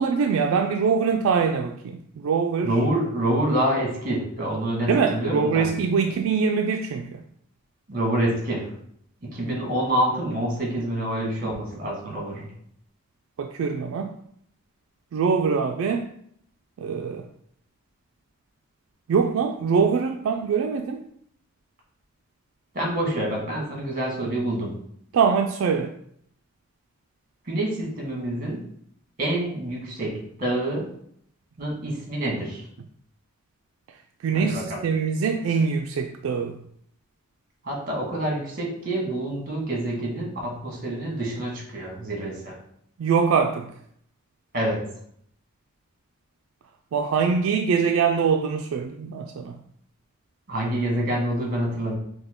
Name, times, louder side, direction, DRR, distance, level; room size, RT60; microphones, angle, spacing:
voice 1, 0.0-2.7 4.9-7.2 13.4-14.1 15.1-16.1 16.8-17.3 19.1-21.0 25.1-25.9 34.2-36.6 43.0-43.7 46.9-49.6, right 5 dB, 75° right, 0.3 m, -23 dB
voice 2, 2.6-5.7 7.9-8.7 9.2-12.5 22.7-24.7 27.4-28.6 29.2-30.9 31.6-32.6 34.3-34.8 37.6-42.5 44.5-44.8 50.5-51.9, right 1 dB, 45° right, 1.5 m, -27 dB
5.7 x 2.2 x 3.6 m
head